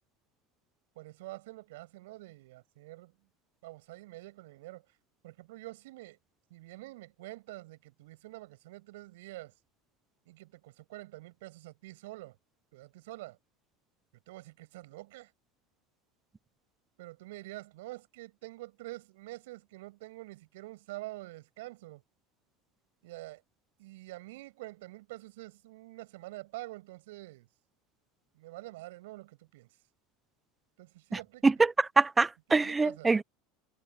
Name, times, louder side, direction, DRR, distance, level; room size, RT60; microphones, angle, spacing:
voice 1, 1.0-3.1 3.6-4.8 5.2-6.2 6.5-9.5 10.3-12.3 12.7-13.4 14.3-15.3 17.0-22.0 23.0-23.4 23.8-27.5 28.3-29.7 30.8-31.4 32.5-33.2, right 19 dB, 80° right, 7.4 m, -46 dB
voice 2, 31.4-33.2, right 3 dB, 10° right, 0.5 m, -24 dB
supercardioid pair, 155°, 0 cm